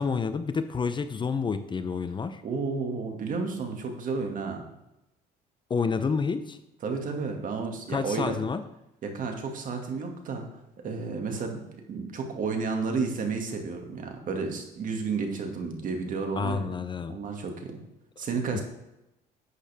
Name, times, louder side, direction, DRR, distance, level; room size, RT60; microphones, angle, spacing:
voice 1, 0.0-2.4 5.7-6.6 7.9-8.6 16.4-17.2 18.5-18.6, left 5 dB, 30° left, 11 dB, 0.6 m, -29 dB
voice 2, 2.4-4.6 6.8-8.3 9.0-10.5 10.8-11.6 11.9-16.7 17.1-17.8 18.2-18.6, right 4 dB, 50° right, 3 dB, 2.2 m, -31 dB
11.5 x 8.5 x 3.6 m, 0.89 s
cardioid pair, 110°, 17 cm